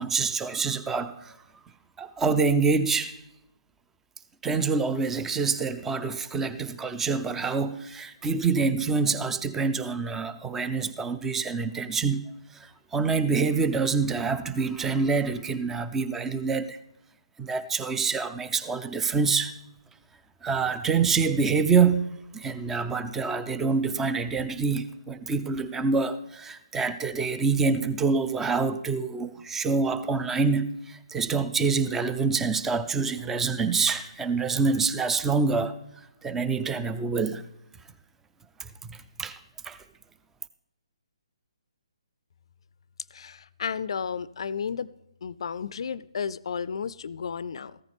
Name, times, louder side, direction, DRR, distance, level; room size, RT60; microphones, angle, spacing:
voice 1, 0.0-1.3 2.0-3.1 4.4-12.2 12.9-16.8 17.4-19.5 20.4-35.8 36.2-37.4 39.2-39.4 39.6-39.8, right 4 dB, 10° right, 0.6 m, -26 dB
voice 2, 43.1-44.9 45.2-47.8, left 6 dB, 60° left, 0.5 m, -33 dB
14.5 x 13.5 x 3.5 m
figure-of-eight pair, 145°, 3 cm